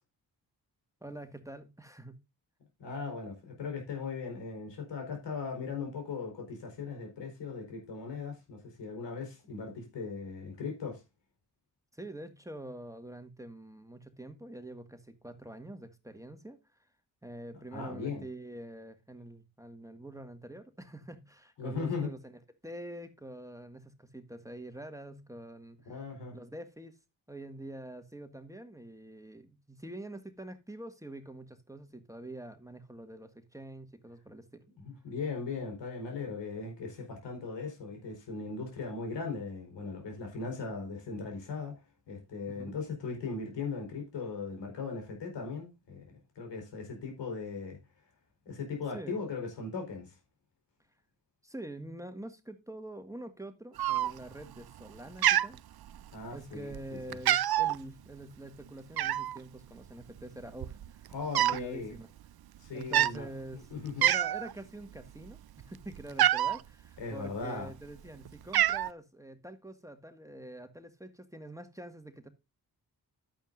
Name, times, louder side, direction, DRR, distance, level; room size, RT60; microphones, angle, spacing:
voice 1, 1.0-2.2 11.9-16.8 17.2-22.3 22.6-25.9 26.3-27.0 27.3-34.7 42.5-42.8 48.9-49.2 51.4-55.6 56.3-62.1 62.7-72.3, right 1 dB, 10° right, 1.8 m, -46 dB
voice 2, 2.8-11.0 17.7-18.2 21.6-22.1 25.9-26.4 34.8-41.7 42.1-47.8 48.5-50.2 56.1-56.7 61.1-61.9 62.6-63.3 63.7-64.0 67.0-67.7, left 4 dB, 85° left, 4.5 m, -38 dB
Cat, 53.8-54.4 54.7-55.0 55.2-56.2 56.7-56.9 57.1-57.8 59.0-59.4 60.2-60.3 60.5-61.7 61.9-62.2 62.8-63.2 63.6-63.7 64.0-64.5 64.9-66.6 67.4-68.0 68.2-68.9, right 12 dB, 60° right, 0.6 m, -27 dB
11.5 x 9.0 x 2.6 m
supercardioid pair, 45°, 42 cm